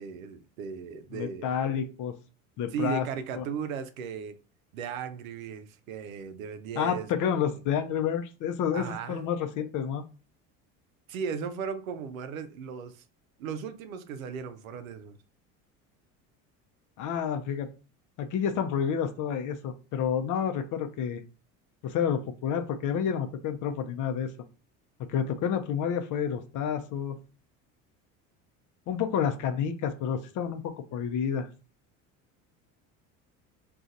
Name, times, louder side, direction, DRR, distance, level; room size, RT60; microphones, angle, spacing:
voice 1, 0.0-1.5 2.7-4.4 4.7-7.5 8.7-9.3 11.1-13.0 13.4-15.2, right 6 dB, 90° right, 0.5 m, -36 dB
voice 2, 1.1-2.1 2.6-3.1 3.4-3.5 6.8-10.0 17.0-17.7 18.2-21.2 21.8-24.3 25.1-27.2 28.9-31.5, left 8 dB, 50° left, 0.6 m, -29 dB
2.5 x 2.4 x 3.9 m
hypercardioid pair, 75°, 40 cm